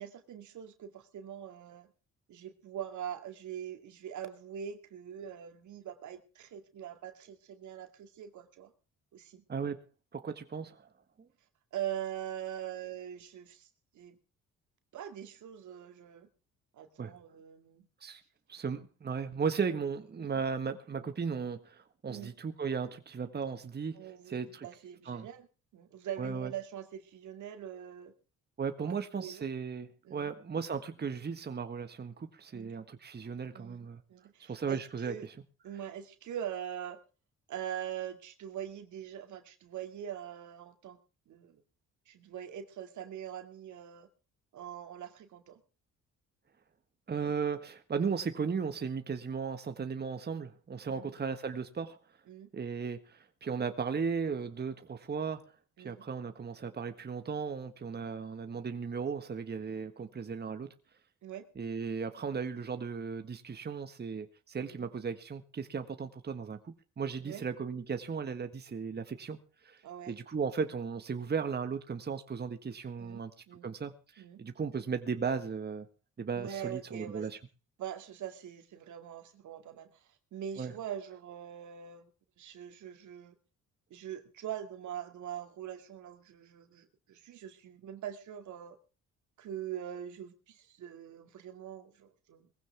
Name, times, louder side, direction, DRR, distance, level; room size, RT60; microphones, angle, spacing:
voice 1, 0.0-1.9 2.3-8.7 9.1-9.4 11.7-13.7 13.9-14.2 14.9-16.3 16.7-17.9 20.2-20.4 22.1-22.3 23.9-25.5 25.7-28.1 28.8-29.4 30.0-30.3 32.5-32.8 33.5-35.3 35.6-37.0 37.5-41.0 41.3-41.6 42.1-44.1 44.5-45.6 50.9-51.1 52.3-52.5 55.8-56.0 61.2-61.5 64.7-64.9 67.2-67.4 69.8-70.2 73.0-73.7 74.2-74.4 76.3-77.3 77.8-82.1 82.4-83.3 83.9-88.8 89.4-92.5, right 10 dB, 75° right, 2.4 m, -43 dB
voice 2, 10.1-10.9 17.0-17.1 18.0-18.2 18.5-24.7 25.1-25.3 26.2-26.5 28.6-34.0 34.4-35.1 47.1-52.0 52.5-55.5 55.8-60.7 61.5-73.3 73.6-75.9 76.2-77.4 80.6-80.7, right 5 dB, 35° right, 1.5 m, -36 dB
20.5 x 15.5 x 3.5 m
cardioid pair, 90°, 30 cm